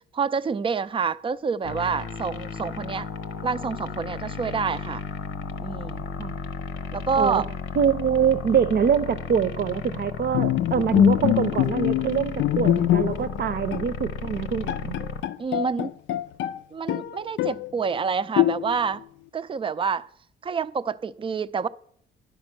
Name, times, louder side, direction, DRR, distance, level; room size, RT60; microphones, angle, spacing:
voice 1, 0.1-3.1 3.4-5.0 5.6-6.0 6.9-7.5 15.0-15.9 16.7-19.0 19.3-20.1 20.4-21.7, right 5 dB, 25° right, 0.4 m, -27 dB
sound 1, 1.6-15.2, left 6 dB, 90° left, 0.9 m, -34 dB
voice 2, 7.8-15.0, right 8 dB, 55° right, 0.7 m, -24 dB
Bowed string instrument, 10.3-13.4 13.7-13.9 14.4-14.5 14.7-16.6 16.9-17.7 18.4-19.0, left 12 dB, 70° left, 0.4 m, -23 dB
10.5 x 5.3 x 6.0 m
cardioid pair, 90°, 20 cm